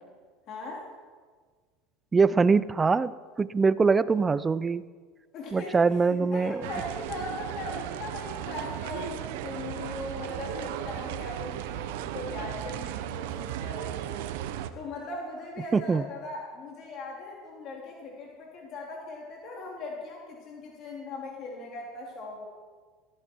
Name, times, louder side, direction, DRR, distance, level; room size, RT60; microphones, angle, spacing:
voice 1, 0.5-0.9 5.3-5.8 6.0-22.5, left 2 dB, 50° left, -2 dB, 3.2 m, -39 dB
voice 2, 2.1-4.8 5.5-6.6 15.7-16.0, right 4 dB, 20° right, 17 dB, 0.5 m, -23 dB
sound 1, 6.6-14.7, right 11 dB, 75° right, 0.9 m, -36 dB
17.0 x 14.5 x 4.7 m, 1.5 s
supercardioid pair, 105°, 0 cm